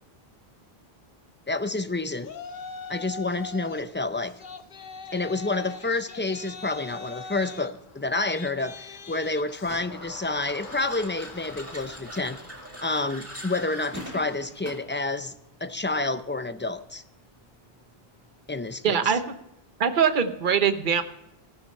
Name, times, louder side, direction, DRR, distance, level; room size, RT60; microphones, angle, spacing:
voice 1, 1.5-2.3 2.9-4.4 5.1-12.4 12.8-15.3 15.6-17.0 18.5-19.1, left 3 dB, 15° left, 11 dB, 0.5 m, -29 dB
Yell, 2.2-3.9 4.2-14.7, left 5 dB, 55° left, 1.0 m, -43 dB
sound 1, 9.6-15.0, right 1 dB, 15° right, 2.2 m, -42 dB
voice 2, 18.8-19.2 19.8-21.0, right 7 dB, 55° right, 9 dB, 1.1 m, -22 dB
14.5 x 12.5 x 5.5 m, 0.83 s
omnidirectional pair, 1.0 m